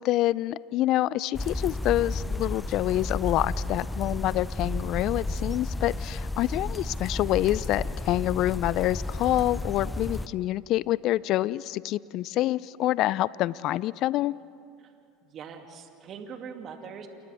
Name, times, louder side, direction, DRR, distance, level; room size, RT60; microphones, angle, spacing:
voice 1, 0.0-14.3, left 15 dB, 55° left, 21 dB, 0.4 m, -27 dB
sound 1, 1.3-10.3, left 2 dB, 10° left, 0.7 m, -32 dB
voice 2, 15.2-17.1, right 6 dB, 45° right, 4 dB, 2.5 m, -42 dB
29.5 x 28.5 x 3.5 m, 2.5 s
hypercardioid pair, 80°, 0 cm